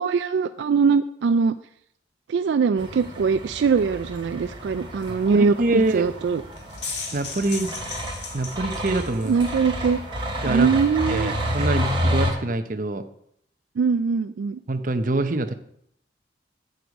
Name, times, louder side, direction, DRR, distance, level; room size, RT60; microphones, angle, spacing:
voice 1, 0.0-1.6 2.3-6.4 9.3-10.0 10.5-11.3 13.8-14.6, right 5 dB, 75° right, 11 dB, 0.3 m, -22 dB
sound 1, 2.8-12.3, equal, 25° right, 2.6 m, -30 dB
voice 2, 5.1-6.1 7.1-7.7 8.3-9.3 10.4-10.7 11.1-13.0 14.7-15.5, right 2 dB, 45° right, 8 dB, 0.7 m, -25 dB
sound 2, 6.5-9.6, left 4 dB, 70° left, 1.8 m, -36 dB
8.0 x 7.7 x 5.2 m, 0.71 s
head